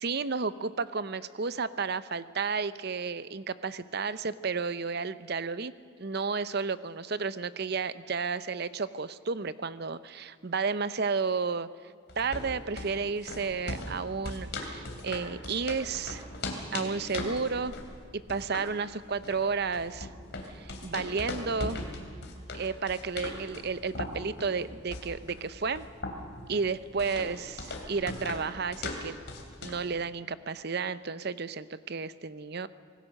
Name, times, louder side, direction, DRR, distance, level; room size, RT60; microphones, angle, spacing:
voice 1, 0.0-5.7 6.0-11.7 12.2-16.2 16.7-17.7 18.1-20.1 20.5-21.8 22.5-25.9 26.5-29.2 29.6-32.7, right 5 dB, 50° right, 15 dB, 0.7 m, -32 dB
sound 1, 12.1-29.9, left 2 dB, 55° left, 2.9 m, -39 dB
26.0 x 18.5 x 6.5 m, 2.1 s
head